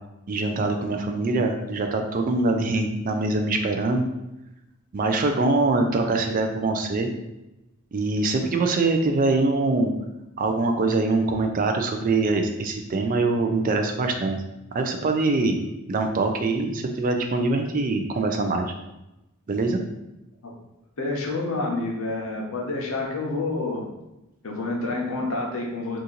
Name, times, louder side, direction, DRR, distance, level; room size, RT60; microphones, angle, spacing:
voice 1, 0.3-4.1 4.9-7.1 7.9-9.9 10.4-14.4 14.7-15.6 15.9-18.7 19.5-19.8, right 3 dB, 40° right, 4 dB, 0.3 m, -23 dB
voice 2, 21.0-23.9 24.4-26.0, left 2 dB, 70° left, -1 dB, 0.8 m, -28 dB
2.8 x 2.5 x 3.8 m, 0.94 s
head